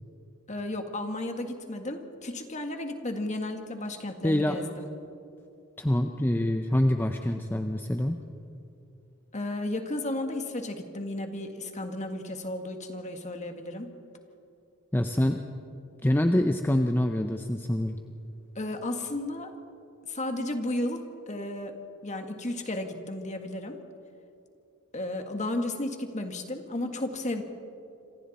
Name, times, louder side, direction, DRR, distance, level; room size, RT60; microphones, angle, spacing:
voice 1, 0.5-4.9 9.3-13.9 18.5-19.5 20.1-21.7 22.0-23.8 24.9-27.4, left 1 dB, 35° left, 5 dB, 1.8 m, -33 dB
voice 2, 4.2-4.6 5.8-8.2 14.9-15.4 16.0-18.0, left 1 dB, 10° left, 5 dB, 0.6 m, -25 dB
27.0 x 25.5 x 4.2 m, 2.7 s
head